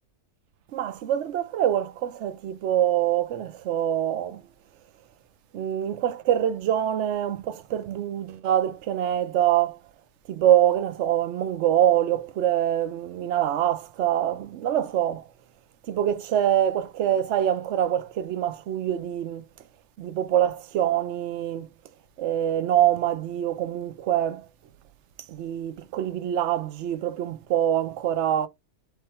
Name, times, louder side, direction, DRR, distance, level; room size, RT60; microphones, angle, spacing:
voice 1, 0.7-4.4 5.5-9.8 10.3-15.3 15.9-19.4 20.0-21.7 22.2-24.5 25.3-28.5, right 11 dB, 75° right, 0.9 m, -25 dB
3.5 x 3.2 x 4.3 m
omnidirectional pair, 1.2 m